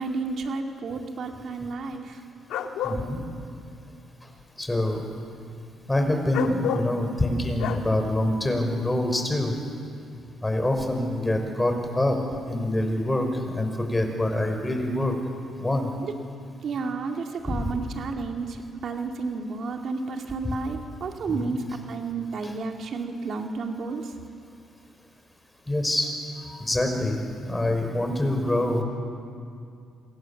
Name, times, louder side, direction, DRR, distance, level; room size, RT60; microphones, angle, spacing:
voice 1, 0.0-2.2 16.0-16.1 16.6-24.1, right 4 dB, 60° right, 3 dB, 2.5 m, -31 dB
sound 1, 2.5-3.0 6.3-6.9 7.6-7.8, left 7 dB, 85° left, 1.8 m, -29 dB
voice 2, 2.8-3.2 4.6-5.0 5.9-9.5 10.4-12.2 12.5-15.1 15.6-15.9 17.5-17.6 20.4-20.6 21.3-21.5 22.4-22.6 25.7-26.1 26.4-28.8, left 1 dB, 15° left, 4 dB, 5.4 m, -25 dB
27.5 x 26.0 x 7.3 m, 2.4 s
cardioid pair, 90°, 0 cm